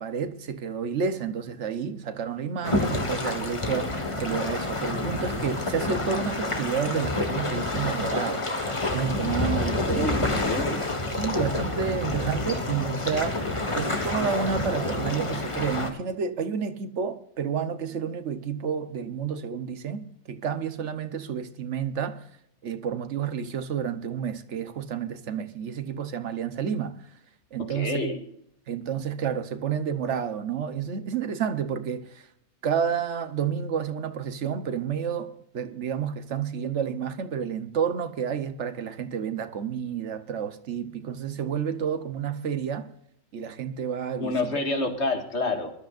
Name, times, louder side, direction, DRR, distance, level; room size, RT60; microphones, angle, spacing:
voice 1, 0.0-8.4 8.9-10.2 11.2-13.4 13.7-22.2 22.6-26.9 27.5-28.1 28.7-32.3 32.6-42.9 43.3-44.3, right 7 dB, 85° right, 1.3 m, -30 dB
sound 1, 2.6-15.9, left 2 dB, 25° left, 1.5 m, -28 dB
voice 2, 9.9-11.0 12.5-12.6 27.6-28.2 44.2-45.7, left 2 dB, 75° left, 2.2 m, -29 dB
23.0 x 13.0 x 2.5 m
omnidirectional pair, 1.2 m